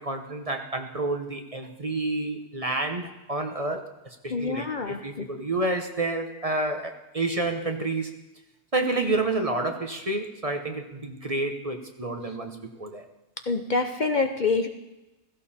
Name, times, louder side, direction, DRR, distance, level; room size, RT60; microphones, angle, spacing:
voice 1, 0.0-8.1 8.7-13.0, right 2 dB, 30° right, 5 dB, 1.1 m, -29 dB
voice 2, 4.3-5.3 13.5-14.7, left 4 dB, 45° left, 6 dB, 0.8 m, -26 dB
16.5 x 15.5 x 4.3 m, 1.0 s
omnidirectional pair, 1.3 m